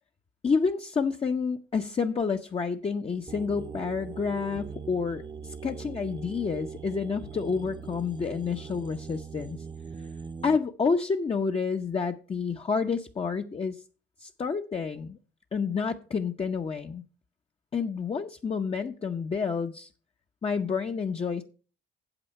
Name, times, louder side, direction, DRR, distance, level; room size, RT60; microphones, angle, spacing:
voice 1, 0.4-9.6 10.4-13.8 14.2-15.2 15.5-17.0 17.7-19.9 20.4-21.4, left 5 dB, 30° left, 4 dB, 0.7 m, -29 dB
sound 1, 3.3-10.6, right 6 dB, 20° right, 0.4 m, -41 dB
8.9 x 7.6 x 5.4 m, 0.38 s
cardioid pair, 90°, 20 cm